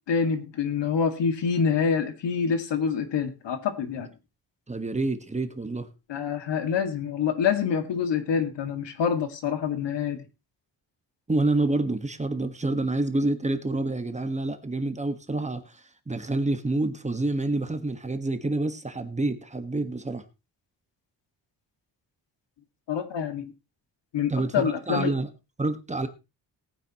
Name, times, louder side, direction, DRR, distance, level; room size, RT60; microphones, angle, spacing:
voice 1, 0.1-4.1 6.1-10.2 22.9-23.5 24.1-25.1, left 6 dB, 80° left, 8 dB, 2.2 m, -26 dB
voice 2, 4.7-5.9 11.3-20.2 24.3-25.3 25.6-26.1, right 2 dB, 15° right, 8 dB, 1.5 m, -28 dB
19.5 x 9.4 x 3.0 m, 0.27 s
cardioid pair, 120°, 42 cm